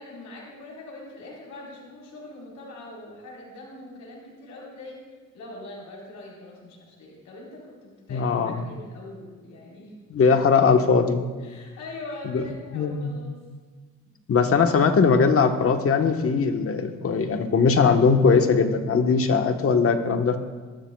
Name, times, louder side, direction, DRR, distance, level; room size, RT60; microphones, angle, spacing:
voice 1, 0.0-5.0 5.3-9.9 11.4-13.4, left 2 dB, 70° left, -3 dB, 4.3 m, -42 dB
voice 2, 8.1-8.7 10.1-11.3 12.2-12.4 12.7-13.2 14.3-20.4, left 5 dB, 50° left, 6 dB, 1.3 m, -20 dB
23.5 x 13.0 x 2.4 m, 1.4 s
cardioid pair, 90°, 30 cm